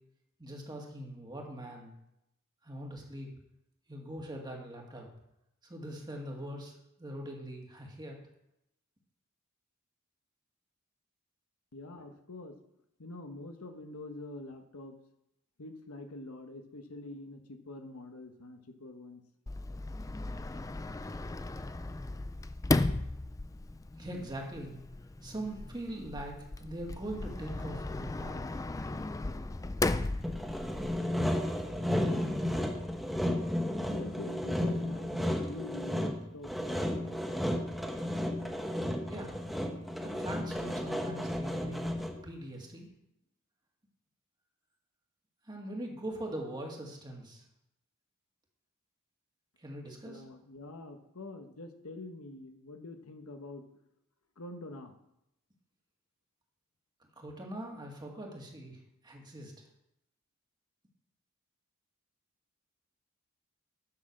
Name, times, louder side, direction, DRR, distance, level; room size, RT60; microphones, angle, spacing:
voice 1, 0.4-1.9 2.6-3.3 3.9-5.1 5.6-8.2 24.0-24.7 25.2-28.5 39.1-39.4 40.0-41.8 42.2-42.9 45.5-47.4 49.6-50.2 57.2-59.7, right 1 dB, 20° right, 0 dB, 2.0 m, -42 dB
voice 2, 11.7-12.6 13.0-14.9 15.6-19.2 33.9-37.2 50.0-53.6 54.4-54.9, left 2 dB, 75° left, 6 dB, 1.2 m, -45 dB
Sliding door, 19.5-31.0, left 2 dB, 15° left, 0.3 m, -36 dB
Sawing, 30.2-42.3, left 1 dB, ahead, 1.0 m, -33 dB
10.0 x 6.3 x 6.6 m, 0.82 s
head